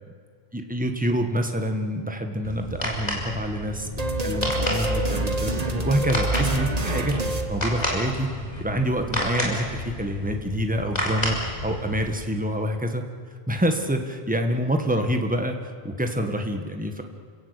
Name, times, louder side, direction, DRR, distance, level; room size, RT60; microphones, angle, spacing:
voice 1, 0.5-7.2 7.5-8.3 8.6-13.0 13.5-17.0, equal, 10° right, 5 dB, 1.7 m, -27 dB
sound 1, 2.4-12.1, left 1 dB, 40° left, 5.1 m, -31 dB
sound 2, 4.0-8.3, right 2 dB, 35° right, 1.6 m, -27 dB
28.5 x 17.0 x 8.4 m, 2.1 s
omnidirectional pair, 1.1 m